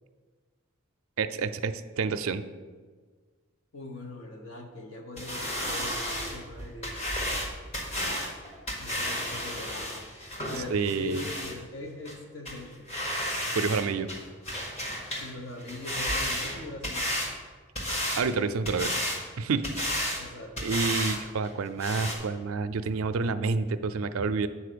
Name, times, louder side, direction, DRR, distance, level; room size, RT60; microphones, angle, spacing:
voice 1, 1.2-2.4 10.7-11.2 13.5-14.1 18.2-19.0 19.4-19.7 20.6-24.5, right 4 dB, 75° right, 10 dB, 0.4 m, -28 dB
voice 2, 3.7-7.0 8.8-10.1 10.5-12.9 15.2-17.1 20.1-20.8, left 2 dB, 65° left, 3 dB, 1.1 m, -41 dB
sound 1, 5.2-11.5 12.0-12.1 12.4-12.6 12.9-13.8 14.1-15.3 15.6-17.3 17.7-18.3 18.6-19.2 19.6-20.2 20.6-21.2 21.4-21.5 21.8-22.1, equal, 30° left, 1.4 m, -32 dB
8.3 x 4.3 x 6.8 m, 1.5 s
head